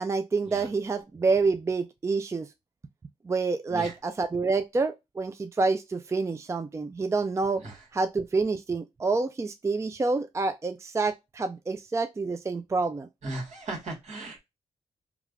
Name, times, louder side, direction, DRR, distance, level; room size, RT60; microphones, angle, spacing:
voice 1, 0.0-2.5 3.2-7.6 7.9-13.1, right 4 dB, 20° right, 0.3 m, -28 dB
voice 2, 13.2-14.4, right 2 dB, 65° right, 1.4 m, -37 dB
3.1 x 2.3 x 2.4 m
cardioid pair, 55°, 13 cm